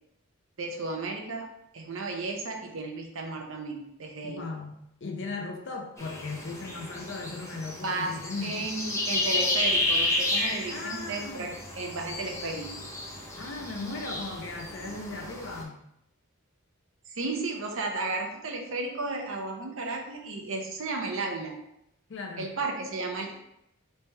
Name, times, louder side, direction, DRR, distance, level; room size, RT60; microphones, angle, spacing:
voice 1, 0.6-1.5 1.7-4.4 7.8-8.1 8.4-12.8 17.1-21.6 22.4-23.3, right 3 dB, 60° right, 2 dB, 0.6 m, -33 dB
voice 2, 4.2-8.7 10.7-11.5 13.4-15.8 22.1-22.5, left 3 dB, 55° left, 2 dB, 0.6 m, -37 dB
sound 1, 6.0-15.6, left 2 dB, 15° left, 0.6 m, -32 dB
3.3 x 2.9 x 3.3 m, 0.80 s
head